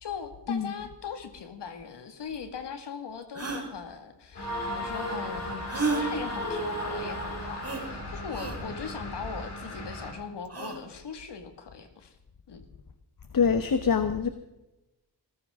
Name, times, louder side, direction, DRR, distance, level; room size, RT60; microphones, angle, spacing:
voice 1, 0.0-12.2 12.5-12.7, left 6 dB, 90° left, 7 dB, 2.1 m, -40 dB
sound 1, 2.3-2.4 3.3-3.7 5.7-6.1 7.6-7.8 8.3-8.6 10.4-10.8, right 4 dB, 35° right, 4.8 m, -31 dB
sound 2, 4.3-10.1, left 1 dB, 70° left, 4.4 m, -39 dB
sound 3, 4.4-8.2, equal, 40° left, 4.6 m, -35 dB
voice 2, 13.3-14.3, left 6 dB, 55° left, 10 dB, 1.2 m, -24 dB
19.0 x 15.5 x 3.7 m, 0.96 s
cardioid pair, 75°, 40 cm